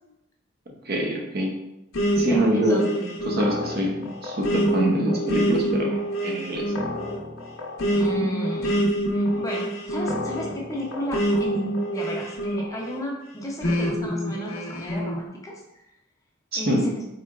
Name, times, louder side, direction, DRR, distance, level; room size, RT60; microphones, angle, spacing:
voice 1, 0.9-1.5 2.2-2.8 3.2-5.9 6.2-6.6 16.5-16.9, right 1 dB, 50° right, 0 dB, 0.6 m, -25 dB
sound 1, 1.9-13.0 13.6-15.2, equal, 90° left, 0.7 m, -26 dB
voice 2, 2.2-3.1 7.9-8.8 9.1-15.8 16.6-17.0, equal, 15° left, -2 dB, 0.5 m, -33 dB
3.6 x 3.2 x 2.3 m, 0.88 s
head